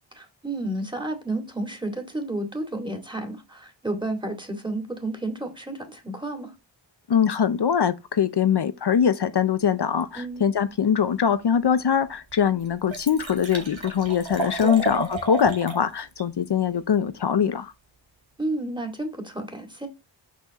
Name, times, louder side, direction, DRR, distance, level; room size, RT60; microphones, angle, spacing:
voice 1, 0.2-6.5 10.2-10.4 14.6-14.9 18.4-19.9, right 2 dB, 10° right, 2.2 m, -31 dB
voice 2, 7.1-17.7, left 8 dB, 60° left, 0.6 m, -22 dB
Liquid, 11.7-11.8 12.3-12.4 12.6-15.8 16.2-16.3, right 3 dB, 85° right, 2.2 m, -31 dB
6.2 x 5.6 x 2.9 m
wide cardioid pair, 55°, 45 cm